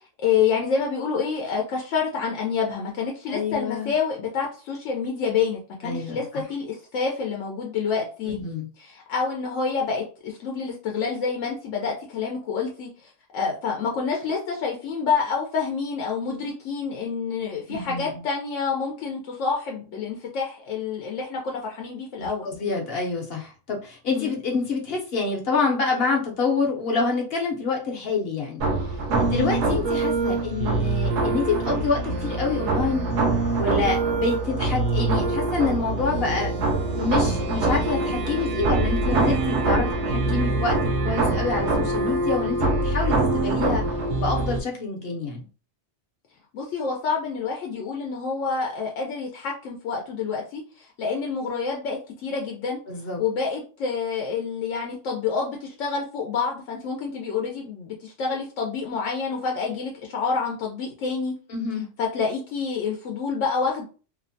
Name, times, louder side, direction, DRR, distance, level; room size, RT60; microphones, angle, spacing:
voice 1, 0.2-8.4 8.8-22.5 24.1-24.3 29.3-29.5 46.5-52.8 53.2-61.4 62.0-63.8, left 5 dB, 85° left, 0 dB, 0.9 m, -28 dB
voice 2, 3.3-3.9 5.8-6.4 8.2-8.7 17.7-18.2 22.2-28.7 29.2-33.1 33.6-36.5 36.9-43.8 44.2-45.5 52.9-53.2 61.5-61.9, left 4 dB, 60° left, 1 dB, 0.8 m, -27 dB
sound 1, 28.6-44.6, right 2 dB, 75° right, 0.9 m, -24 dB
2.8 x 2.1 x 2.6 m, 0.37 s
omnidirectional pair, 1.2 m